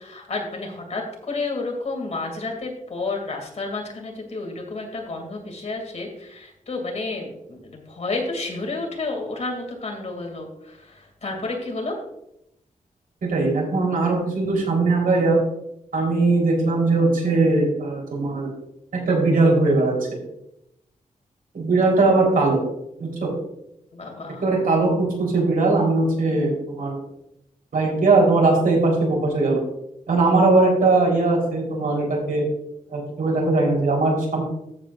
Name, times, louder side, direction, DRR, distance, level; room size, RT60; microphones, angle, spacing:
voice 1, 0.0-12.0 23.9-24.4, left 3 dB, 50° left, 1 dB, 2.7 m, -31 dB
voice 2, 13.2-15.4 15.9-18.5 19.1-19.9 21.5-22.6 23.0-23.3 24.4-27.0 27.7-29.6 30.1-32.4 32.9-34.4, right 3 dB, 85° right, -2 dB, 4.1 m, -20 dB
13.5 x 8.2 x 2.6 m, 0.81 s
wide cardioid pair, 120°, 14 cm